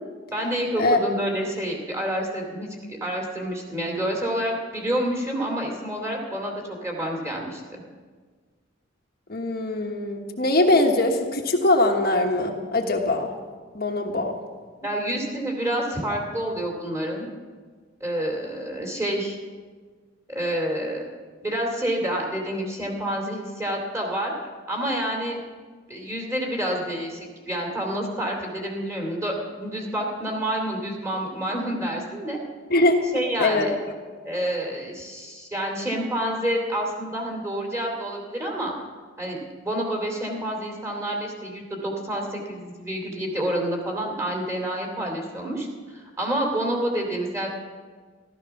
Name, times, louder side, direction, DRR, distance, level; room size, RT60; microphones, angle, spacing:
voice 1, 0.3-7.6 14.8-17.3 18.0-19.4 20.3-21.1 21.4-24.3 24.7-25.4 25.9-32.4 33.1-33.7 34.2-38.7 39.2-47.5, right 1 dB, 15° right, 0 dB, 2.6 m, -28 dB
voice 2, 9.3-13.3 13.7-14.4 32.7-32.9 33.4-33.7, left 2 dB, 50° left, 2 dB, 1.3 m, -22 dB
14.5 x 13.0 x 5.9 m, 1.5 s
head